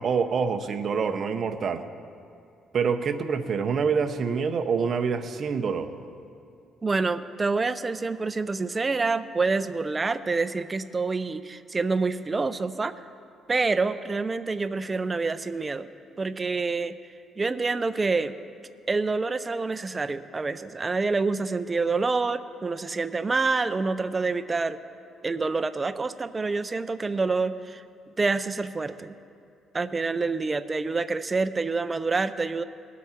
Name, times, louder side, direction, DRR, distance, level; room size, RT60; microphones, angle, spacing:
voice 1, 0.0-1.8 2.7-5.9, right 6 dB, 45° right, 8 dB, 0.7 m, -26 dB
voice 2, 6.8-13.0 13.5-15.9 16.2-16.9 17.4-18.4 18.9-24.8 25.2-27.8 28.2-29.2 29.7-32.6, right 3 dB, 20° right, 11 dB, 0.4 m, -27 dB
20.0 x 8.3 x 4.3 m, 2.4 s
cardioid pair, 135°, 0 cm